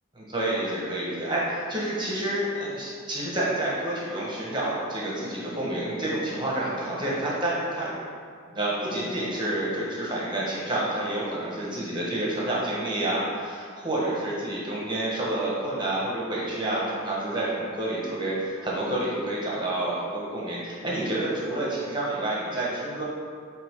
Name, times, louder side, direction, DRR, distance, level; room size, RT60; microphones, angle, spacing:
voice 1, 0.1-7.9 8.5-23.0, right 1 dB, 20° right, -6 dB, 1.4 m, -29 dB
8.2 x 3.5 x 3.7 m, 2.1 s
head